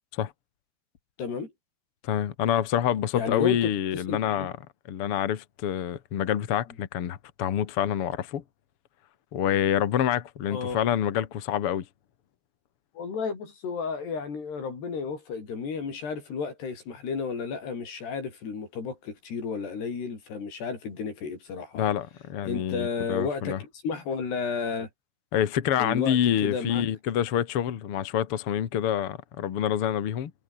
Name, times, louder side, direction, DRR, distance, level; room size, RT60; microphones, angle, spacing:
voice 1, 1.2-1.5 3.1-4.5 10.5-10.8 13.0-21.8 22.4-24.9 25.8-26.8, left 5 dB, 75° left, 8.0 m, -32 dB
voice 2, 2.0-4.5 4.9-8.4 9.3-11.8 21.7-23.6 25.3-30.3, left 10 dB, 55° left, 1.6 m, -27 dB
omnidirectional pair, 4.8 m